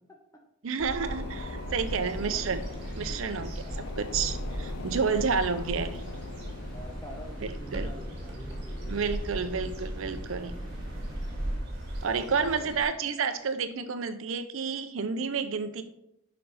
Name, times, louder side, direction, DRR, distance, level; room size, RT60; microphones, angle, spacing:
voice 1, 0.6-2.7 2.9-3.5 4.0-6.0 7.7-7.9 8.9-10.5 12.0-15.8, right 5 dB, 75° right, 10 dB, 0.5 m, -30 dB
sound 1, 0.8-12.9, right 1 dB, 55° right, 1.9 m, -37 dB
sound 2, 1.0-11.0 11.4-11.5, left 6 dB, 70° left, 0.3 m, -45 dB
sound 3, 1.8-11.6, equal, 20° right, 3.0 m, -44 dB
voice 2, 3.1-3.9 5.0-5.4 6.7-9.0 9.4-9.5 12.1-12.8, left 1 dB, 15° left, 1 dB, 0.8 m, -47 dB
6.9 x 5.2 x 4.0 m, 0.80 s
head